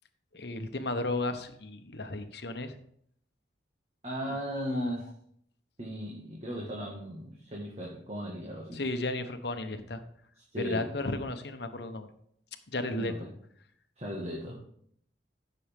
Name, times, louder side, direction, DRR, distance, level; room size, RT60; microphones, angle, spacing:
voice 1, 0.3-2.7 4.7-5.0 8.7-10.0 10.6-12.1 12.7-13.1, left 2 dB, 65° left, 8 dB, 1.0 m, -34 dB
voice 2, 4.0-5.1 5.8-8.8 10.5-10.9 12.9-13.2 14.0-14.6, equal, 35° right, -2 dB, 1.8 m, -36 dB
14.5 x 7.0 x 3.6 m, 0.67 s
head